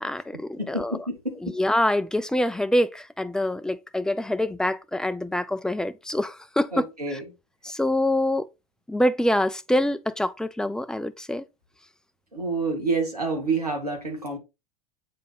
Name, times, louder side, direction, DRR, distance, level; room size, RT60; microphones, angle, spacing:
voice 1, 0.0-1.0 1.4-6.9 7.1-7.2 7.6-8.5 8.9-11.4, left 1 dB, 5° left, 0.4 m, -25 dB
voice 2, 0.6-1.4 6.7-7.2 12.3-14.4, right 3 dB, 90° right, 2.0 m, -28 dB
8.5 x 3.8 x 3.5 m
figure-of-eight pair, 80°, 19 cm